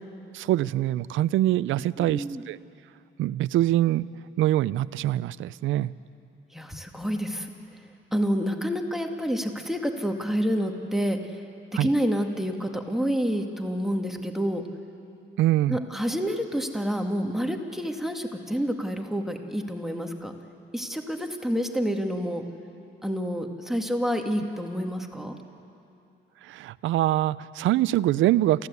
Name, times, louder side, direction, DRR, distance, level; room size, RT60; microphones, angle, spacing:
voice 1, 0.3-2.6 3.2-4.1 4.4-5.9 11.7-11.9 15.4-15.8 26.4-28.7, right 14 dB, 85° right, 18 dB, 0.5 m, -24 dB
voice 2, 2.0-2.4 6.5-7.5 8.1-11.4 11.7-14.6 15.7-20.3 20.7-22.4 23.0-25.4, equal, ahead, 4 dB, 1.9 m, -28 dB
29.0 x 15.0 x 8.3 m, 2.7 s
cardioid pair, 90°, 20 cm